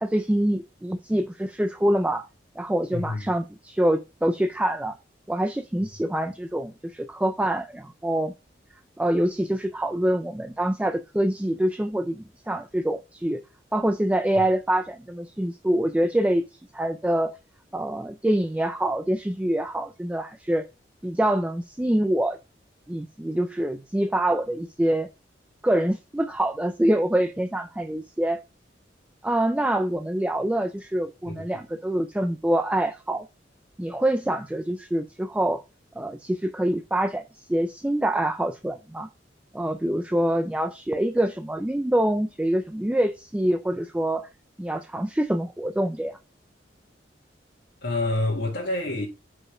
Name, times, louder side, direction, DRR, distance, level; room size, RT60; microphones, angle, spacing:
voice 1, 0.0-2.2 2.6-5.0 5.3-8.3 9.0-13.4 13.7-16.4 16.7-17.3 17.7-20.6 21.0-22.4 22.9-25.1 25.6-28.4 29.2-33.3 33.8-35.6 36.0-37.2 37.5-39.1 39.5-44.3 44.6-46.2, right 1 dB, 5° right, 0.3 m, -25 dB
voice 2, 2.9-3.3 31.3-31.6 47.8-49.1, left 2 dB, 70° left, 1.7 m, -28 dB
4.9 x 4.8 x 4.9 m
head